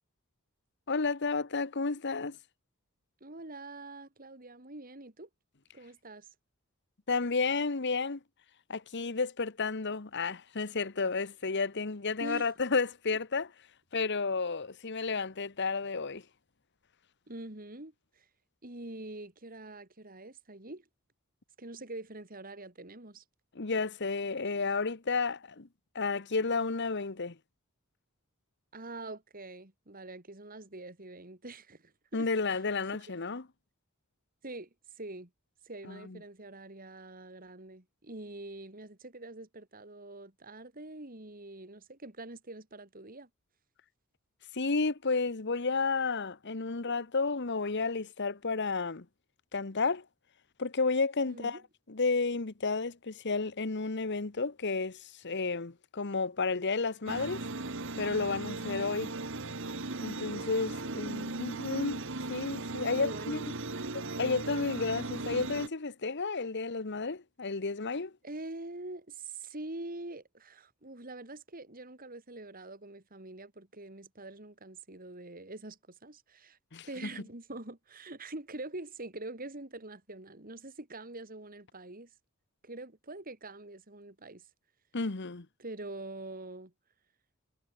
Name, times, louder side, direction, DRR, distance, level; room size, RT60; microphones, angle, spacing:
voice 1, 0.9-2.4 7.1-8.2 8.7-13.5 13.9-16.2 23.5-25.7 25.9-27.4 32.1-33.5 35.8-36.2 44.5-49.0 49.5-50.0 50.6-51.6 51.9-57.5 58.0-59.1 60.0-62.0 62.3-63.4 64.2-68.1 76.7-76.9 84.9-85.5, left 4 dB, 55° left, 1.1 m, -32 dB
voice 2, 3.2-5.3 5.7-6.3 12.2-12.5 17.3-18.3 18.6-20.8 21.6-23.2 28.7-32.3 34.4-34.7 35.0-35.3 35.6-43.3 46.8-46.9 51.3-51.6 60.6-61.6 62.9-63.4 63.7-64.0 68.2-76.6 76.9-82.1 82.6-84.5 85.6-86.7, right 2 dB, 40° right, 3.1 m, -45 dB
sound 1, 57.1-65.7, right 2 dB, 60° right, 1.9 m, -38 dB
head